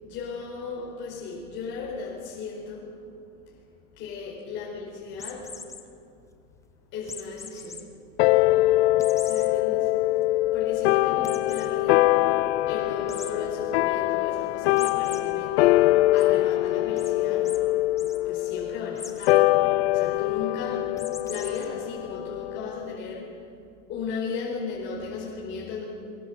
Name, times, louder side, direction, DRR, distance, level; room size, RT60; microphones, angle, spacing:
voice 1, 0.0-2.9 4.0-5.5 6.9-7.8 9.2-9.9 10.5-12.1 12.7-17.5 18.2-19.4 19.9-20.8 21.3-23.3 23.9-25.8, left 4 dB, 30° left, -4 dB, 4.7 m, -36 dB
sound 1, 5.2-5.8 7.1-7.8 8.2-8.3 9.0-9.5 10.0-10.1 10.4-10.5 11.2-11.7 13.1-13.3 14.8-15.2 15.6-16.2 17.0-17.1 17.4-17.6 17.9-18.2 18.9-19.3 21.0-21.6, left 5 dB, 5° left, 0.7 m, -40 dB
sound 2, 8.2-22.9, left 17 dB, 50° left, 0.5 m, -23 dB
23.0 x 22.0 x 7.7 m, 2.4 s
supercardioid pair, 170°, 42 cm